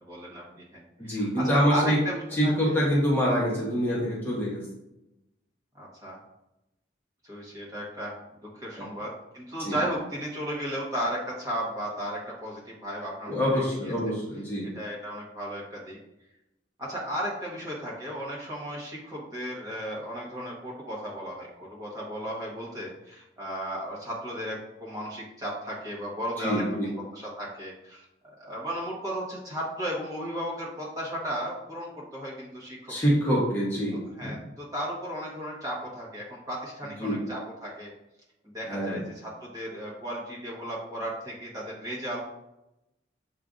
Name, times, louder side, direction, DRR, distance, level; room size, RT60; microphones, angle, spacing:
voice 1, 0.0-2.7 5.7-6.2 7.2-8.1 8.6-13.9 14.7-16.0 16.8-32.9 34.2-37.9 38.5-42.2, equal, 20° right, -6 dB, 1.1 m, -35 dB
voice 2, 1.0-2.0 2.3-4.6 9.6-9.8 13.3-14.7 26.4-26.9 32.9-34.0 37.0-37.2 38.7-39.0, equal, 10° left, -6 dB, 1.0 m, -25 dB
7.3 x 2.5 x 2.5 m, 0.90 s
head